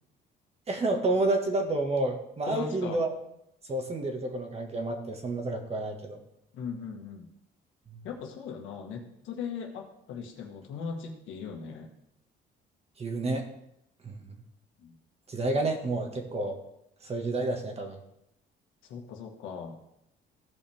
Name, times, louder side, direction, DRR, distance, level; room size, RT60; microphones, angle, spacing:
voice 1, 0.7-3.1 3.7-6.2 7.9-8.0 13.0-13.5 14.0-14.4 15.3-16.6 17.0-18.0, right 2 dB, 30° right, 3 dB, 1.8 m, -30 dB
voice 2, 2.5-3.0 6.5-7.3 8.0-11.9 14.8-14.9 18.8-19.8, left 6 dB, 80° left, 2 dB, 1.7 m, -39 dB
15.5 x 5.4 x 3.6 m, 0.80 s
cardioid pair, 115°, 20 cm